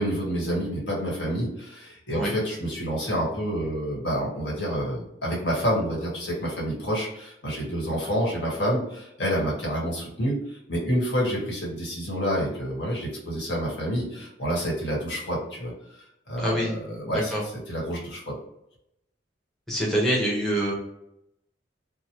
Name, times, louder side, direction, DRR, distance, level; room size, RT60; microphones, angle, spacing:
voice 1, 0.0-15.7 16.3-18.4, equal, 70° left, -4 dB, 1.3 m, -28 dB
voice 2, 16.4-16.7 17.1-17.4 19.7-20.7, equal, ahead, -5 dB, 0.7 m, -25 dB
3.0 x 2.1 x 2.9 m, 0.82 s
head